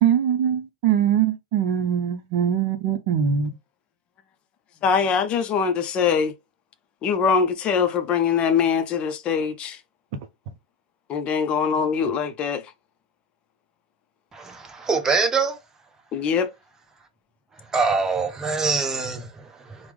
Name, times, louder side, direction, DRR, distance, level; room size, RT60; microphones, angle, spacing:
voice 1, 0.0-3.5, right 9 dB, 55° right, 0.5 m, -22 dB
voice 2, 4.8-6.3 7.0-9.8 11.1-12.6 16.1-16.5, left 6 dB, 35° left, 0.4 m, -22 dB
voice 3, 14.3-15.6 17.5-19.9, right 4 dB, 15° right, 0.7 m, -24 dB
3.3 x 2.0 x 3.1 m
hypercardioid pair, 110°, 3 cm